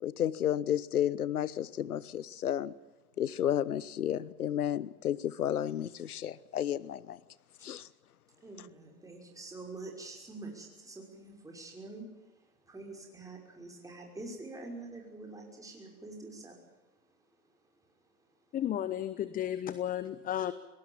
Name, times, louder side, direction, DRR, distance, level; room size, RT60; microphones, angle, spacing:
voice 1, 0.0-2.7 3.2-7.2 7.6-7.9, left 10 dB, 85° left, 19 dB, 1.1 m, -32 dB
voice 2, 8.3-18.6, right 2 dB, 10° right, 0 dB, 5.8 m, -47 dB
voice 3, 18.5-20.5, left 11 dB, 20° left, 15 dB, 0.8 m, -33 dB
23.5 x 19.0 x 7.3 m, 1.1 s
hypercardioid pair, 115°, 43 cm